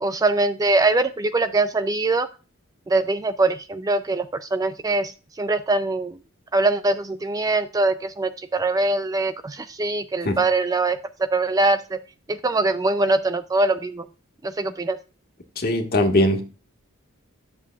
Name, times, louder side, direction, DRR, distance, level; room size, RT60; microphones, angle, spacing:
voice 1, 0.0-2.3 2.9-5.1 5.4-6.2 6.5-11.0 11.3-12.0 12.3-14.0 14.4-15.0, right 2 dB, 15° right, 10 dB, 0.3 m, -22 dB
voice 2, 15.6-16.4, left 1 dB, 45° left, 3 dB, 1.6 m, -20 dB
11.0 x 7.0 x 2.3 m, 0.33 s
head